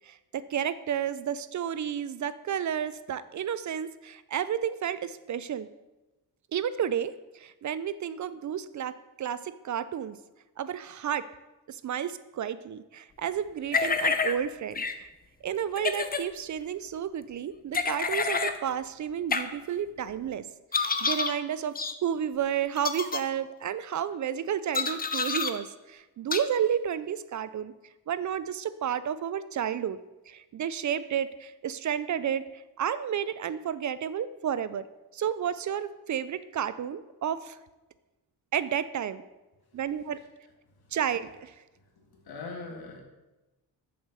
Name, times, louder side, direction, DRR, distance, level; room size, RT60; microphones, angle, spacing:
voice 1, 0.0-5.7 6.5-10.2 10.6-11.3 11.7-15.1 15.4-20.4 20.7-21.7 22.0-27.7 28.1-30.0 30.3-34.8 35.1-37.6 38.5-39.2 39.7-40.2 40.9-41.5, right 9 dB, 50° right, 15 dB, 0.4 m, -31 dB
sound 1, 13.7-14.3 14.8-14.9 15.8-16.2 17.7-18.6 19.3-19.4 20.7-21.3 21.8-21.9 22.8-23.2 24.7-25.5 26.3-26.4, left 4 dB, 25° left, 0.6 m, -28 dB
voice 2, 41.7-43.0, left 3 dB, 70° left, 1 dB, 1.9 m, -43 dB
7.0 x 5.2 x 6.5 m, 1.1 s
cardioid pair, 95°, 39 cm